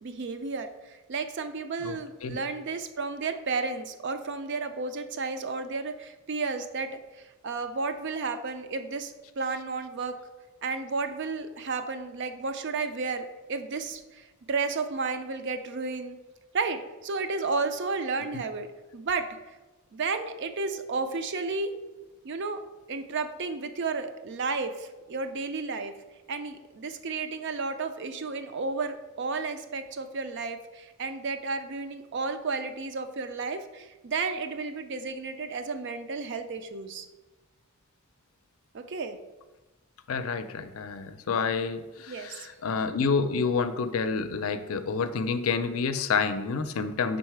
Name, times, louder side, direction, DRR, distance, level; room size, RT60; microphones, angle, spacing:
voice 1, 0.0-10.2 10.6-16.2 16.5-19.3 19.9-21.7 22.2-22.6 22.9-25.9 26.3-37.1 38.7-39.2 42.1-42.5, right 4 dB, 55° right, 8 dB, 0.5 m, -32 dB
voice 2, 1.8-2.4 18.3-18.4 40.1-47.2, left 5 dB, 80° left, 10 dB, 0.5 m, -29 dB
5.5 x 4.0 x 4.6 m, 1.1 s
head